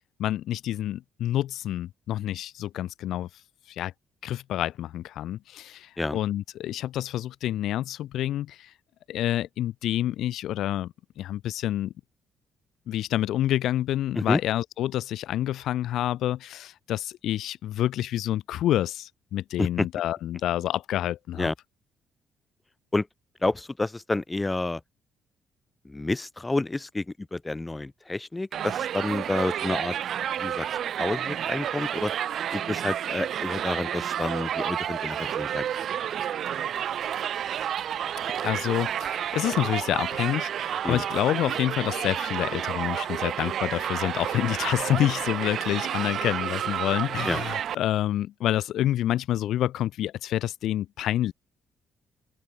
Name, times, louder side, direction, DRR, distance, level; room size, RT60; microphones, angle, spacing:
voice 1, 0.2-3.3 3.7-3.9 4.2-8.7 9.1-11.9 12.9-21.5 38.4-51.3, left 13 dB, 80° left, 2.1 m, -28 dB
voice 2, 23.4-24.8 25.8-29.9 30.3-30.7 31.0-32.1 32.5-35.6 40.8-41.0 47.3-47.4, left 2 dB, 15° left, 4.0 m, -29 dB
Crowd, 28.5-47.8, right 10 dB, 65° right, 0.5 m, -30 dB
open air
cardioid pair, 90°, 0 cm